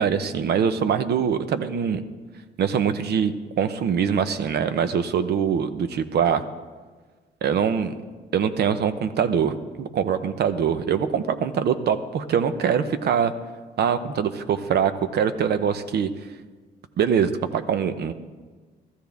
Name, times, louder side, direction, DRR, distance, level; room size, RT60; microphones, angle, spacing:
voice 1, 0.0-2.0 2.6-6.4 7.4-7.9 8.3-13.3 13.8-16.1 17.0-18.1, right 7 dB, 65° right, 11 dB, 0.8 m, -23 dB
14.5 x 13.5 x 3.5 m, 1.4 s
cardioid pair, 95°, 18 cm